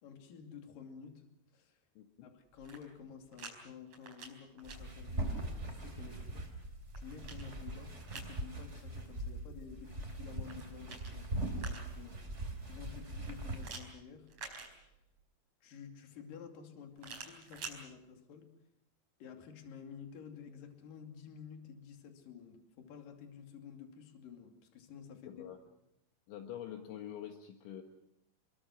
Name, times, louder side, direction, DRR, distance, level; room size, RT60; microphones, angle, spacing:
voice 1, 0.0-1.8 2.2-6.5 6.9-14.3 14.6-15.0 15.6-18.5 19.2-25.5, left 7 dB, 50° left, 5 dB, 3.8 m, -51 dB
voice 2, 2.0-2.3 25.2-25.6 26.3-27.8, left 10 dB, 70° left, 5 dB, 3.6 m, -46 dB
sound 1, 2.5-3.5 3.9-4.8 6.5-8.4 10.3-12.1 13.6-15.2 17.0-17.8, right 4 dB, 35° right, 5.2 m, -49 dB
sound 2, 4.6-13.7, right 1 dB, 15° right, 3.1 m, -41 dB
28.0 x 22.5 x 6.2 m, 0.79 s
omnidirectional pair, 5.8 m